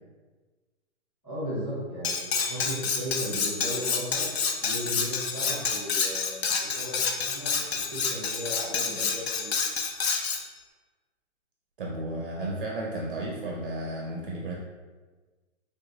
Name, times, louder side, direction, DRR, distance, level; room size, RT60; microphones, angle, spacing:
voice 1, 1.2-4.3 4.6-7.5 7.9-9.5, equal, 5° left, -12 dB, 1.3 m, -36 dB
Cutlery silverware, 2.0-10.4, left 5 dB, 55° left, 0.5 m, -28 dB
voice 2, 11.8-14.6, right 1 dB, 45° right, -2 dB, 0.5 m, -33 dB
3.3 x 2.8 x 2.7 m, 1.3 s
hypercardioid pair, 165°, 37 cm